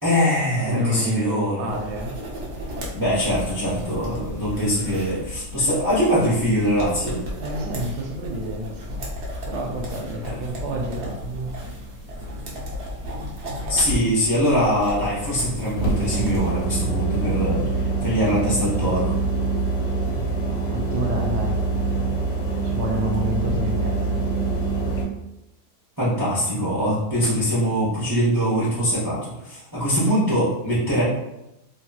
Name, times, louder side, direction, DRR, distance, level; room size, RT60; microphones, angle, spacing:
voice 1, 0.0-1.7 2.9-7.2 10.2-10.3 13.7-19.1 26.0-31.0, equal, 20° right, -10 dB, 0.6 m, -22 dB
voice 2, 0.7-2.2 3.9-4.0 5.6-5.7 7.4-9.0 9.5-11.7 20.7-21.6 22.6-24.2, equal, 80° right, 0 dB, 1.2 m, -29 dB
sound 1, 1.7-16.5, left 1 dB, 55° right, 0.8 m, -34 dB
sound 2, 15.8-25.0, right 3 dB, 70° left, 1.2 m, -24 dB
2.9 x 2.7 x 2.3 m, 0.91 s
omnidirectional pair, 1.8 m